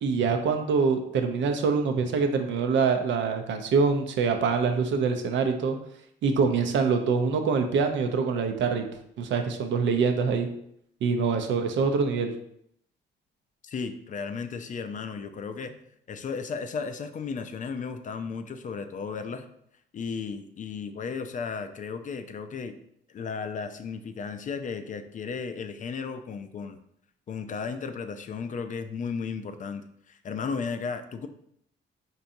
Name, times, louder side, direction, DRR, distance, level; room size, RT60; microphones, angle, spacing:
voice 1, 0.0-5.8 6.2-8.9 9.2-10.5 11.0-12.3, right 5 dB, 70° right, 5 dB, 0.5 m, -25 dB
voice 2, 13.6-15.8 16.1-19.5 19.9-22.8 23.1-26.8 27.3-31.3, left 5 dB, 40° left, 9 dB, 0.4 m, -34 dB
4.5 x 2.7 x 2.6 m, 0.71 s
cardioid pair, 90°, 20 cm